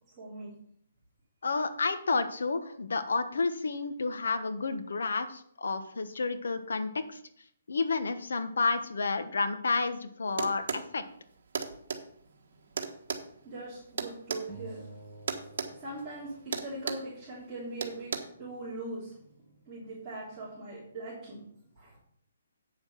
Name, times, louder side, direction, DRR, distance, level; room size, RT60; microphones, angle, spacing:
voice 1, 0.2-0.5 12.8-12.9 13.4-14.9 15.8-19.2 19.7-21.5 21.8-22.0, right 2 dB, 10° right, -12 dB, 3.7 m, -41 dB
voice 2, 1.4-7.2 7.7-11.0, left 4 dB, 85° left, 10 dB, 1.2 m, -30 dB
sound 1, 10.4-10.9 11.5-12.0 12.8-14.5 15.3-15.7 16.0-16.2 16.5-17.1 17.8-18.2, right 5 dB, 55° right, 1.4 m, -34 dB
sound 2, 14.5-17.1, right 2 dB, 10° left, 1.4 m, -49 dB
8.8 x 7.0 x 5.9 m, 0.66 s
hypercardioid pair, 170°, 0 cm